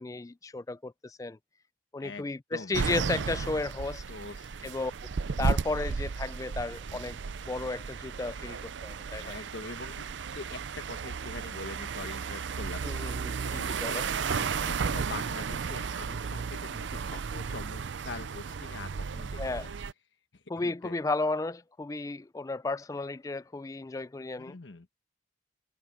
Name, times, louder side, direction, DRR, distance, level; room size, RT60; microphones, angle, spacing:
voice 1, 0.0-1.4 1.9-4.0 4.6-4.9 5.4-7.2 7.5-9.4 12.8-14.1 19.4-19.7 20.5-24.5, left 3 dB, 20° left, 0.3 m, -34 dB
sound 1, 2.7-19.9, right 5 dB, 75° right, 0.5 m, -34 dB
voice 2, 4.1-4.7 9.1-10.0 10.3-19.7 20.3-21.0 24.4-24.9, left 3 dB, 75° left, 1.2 m, -44 dB
head